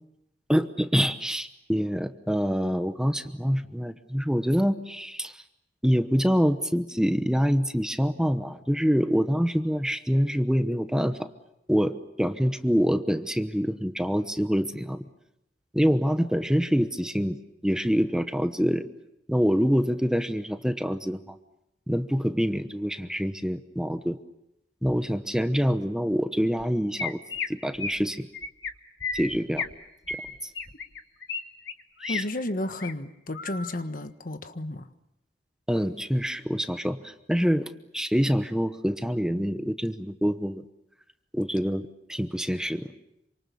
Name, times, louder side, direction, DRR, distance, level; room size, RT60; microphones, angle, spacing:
voice 1, 0.5-5.4 5.8-11.3 11.7-15.0 15.7-17.4 17.6-18.9 19.3-21.4 21.9-24.2 24.8-27.2 27.5-28.3 29.1-29.7 30.1-30.2 30.4-30.5 32.0-32.2 35.7-40.6 41.3-42.9, equal, 5° right, 9 dB, 1.0 m, -26 dB
Chirp tweet, 26.6-26.7 27.0-27.5 27.8-28.0 28.3-28.7 29.0-29.7 30.1-31.4 31.7-32.2 32.6-32.9 33.3-33.7, left 4 dB, 75° left, 2.2 m, -33 dB
voice 2, 32.1-34.9, left 1 dB, 50° left, 9 dB, 1.4 m, -32 dB
27.5 x 26.0 x 7.1 m, 0.82 s
head